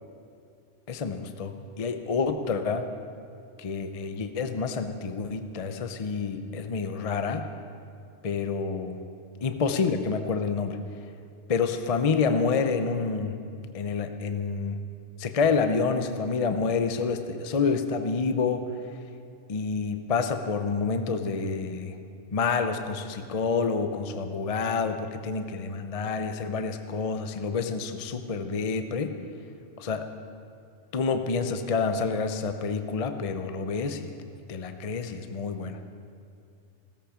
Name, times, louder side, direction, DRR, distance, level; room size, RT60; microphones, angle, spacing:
voice 1, 0.9-2.8 3.6-7.4 8.2-9.0 9.4-10.8 11.5-13.4 13.7-14.8 15.2-18.6 19.5-22.0 22.3-29.1 29.8-30.1 30.9-34.1 34.5-35.8, left 5 dB, 35° left, 8 dB, 0.6 m, -28 dB
16.5 x 14.0 x 5.0 m, 2.4 s
omnidirectional pair, 1.4 m